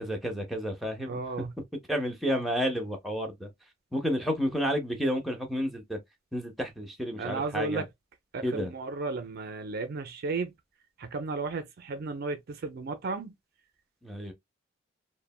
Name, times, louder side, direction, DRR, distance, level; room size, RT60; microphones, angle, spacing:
voice 1, 0.0-1.5 1.9-3.5 3.9-6.0 6.3-7.8 8.4-8.7 14.0-14.3, equal, ahead, 0.6 m, -31 dB
voice 2, 1.1-1.5 7.2-7.8 8.3-10.5 11.0-13.3, right 3 dB, 45° right, 0.4 m, -34 dB
3.2 x 2.1 x 2.2 m
head